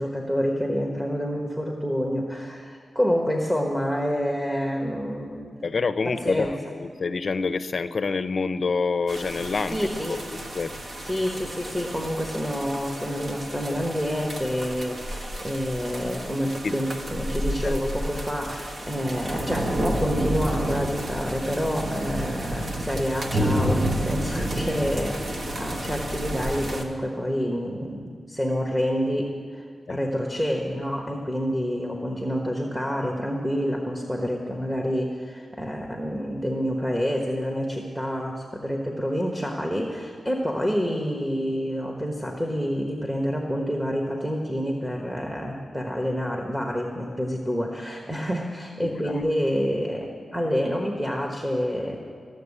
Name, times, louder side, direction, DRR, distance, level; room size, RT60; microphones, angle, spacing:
voice 1, 0.0-5.6 6.1-6.5 9.7-10.2 11.0-52.0, equal, 5° right, 1 dB, 1.2 m, -28 dB
voice 2, 5.6-11.0 17.6-17.8 29.9-30.0 48.8-49.2, left 4 dB, 50° left, 10 dB, 0.6 m, -28 dB
sound 1, 9.1-26.8, right 1 dB, 55° right, 1.5 m, -30 dB
15.0 x 7.2 x 9.8 m, 2.1 s
wide cardioid pair, 125°, 0 cm